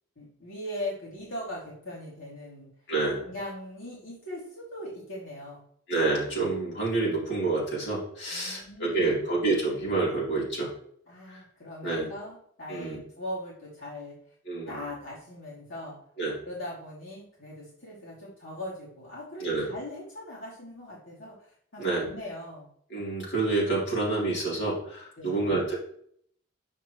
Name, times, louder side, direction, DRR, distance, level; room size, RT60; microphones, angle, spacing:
voice 1, 0.2-2.7 3.2-5.6 8.3-9.3 11.1-14.2 14.7-16.0 16.4-22.7 25.2-25.5, left 1 dB, 85° left, -6 dB, 3.1 m, -40 dB
voice 2, 2.9-3.2 5.9-10.7 11.8-12.1 12.7-13.0 14.5-14.8 16.2-16.4 19.4-19.7 21.8-22.1 22.9-25.8, right 3 dB, 60° left, -6 dB, 3.9 m, -28 dB
9.8 x 6.2 x 3.2 m, 0.64 s
head